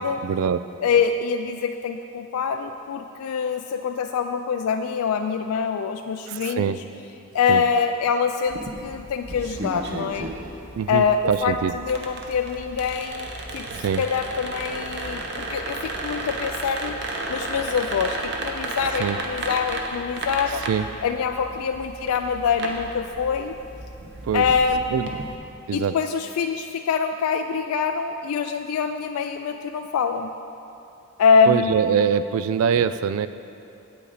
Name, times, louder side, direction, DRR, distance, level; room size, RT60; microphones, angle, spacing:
voice 1, 0.2-0.6 6.3-6.8 7.5-7.6 10.8-11.7 13.7-14.0 19.0-19.2 20.7-20.9 24.2-24.5 24.9-25.1 25.7-25.9 31.5-33.3, right 7 dB, 75° right, 13 dB, 0.3 m, -23 dB
voice 2, 0.8-6.7 7.3-10.3 10.9-13.7 14.0-17.0 17.3-20.6 21.0-23.6 24.3-25.1 25.7-30.3 31.2-31.7, left 6 dB, 85° left, 6 dB, 0.3 m, -24 dB
sound 1, 8.5-25.3, right 2 dB, 50° right, 0.8 m, -33 dB
8.6 x 8.3 x 4.1 m, 2.7 s
head